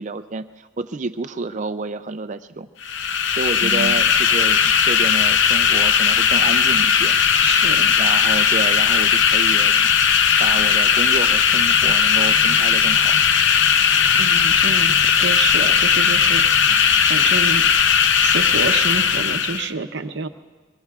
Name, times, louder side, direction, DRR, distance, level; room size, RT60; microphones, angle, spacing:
voice 1, 0.0-2.7 3.3-7.5 7.9-9.9 10.4-13.2 15.6-15.7, right 3 dB, 35° right, 11 dB, 0.4 m, -29 dB
sound 1, 2.8-19.7, left 7 dB, 60° left, 0.6 m, -17 dB
voice 2, 3.6-4.0 7.4-7.9 14.2-16.4 17.1-17.6 18.2-20.3, right 4 dB, 55° right, 8 dB, 0.8 m, -28 dB
24.0 x 23.5 x 2.4 m, 1.4 s
head